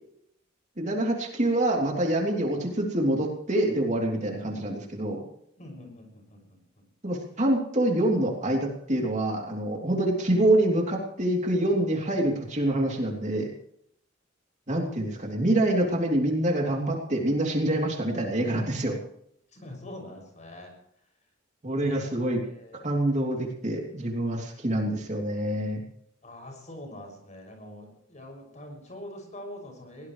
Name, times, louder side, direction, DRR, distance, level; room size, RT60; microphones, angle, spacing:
voice 1, 0.8-5.2 7.0-13.5 14.7-19.0 21.6-22.4 22.8-25.8, right 1 dB, 35° right, 0 dB, 3.1 m, -26 dB
voice 2, 5.6-6.8 7.3-7.4 19.5-20.7 21.7-22.9 26.2-30.1, left 1 dB, 35° left, 3 dB, 6.5 m, -44 dB
22.0 x 18.0 x 3.2 m, 0.73 s
head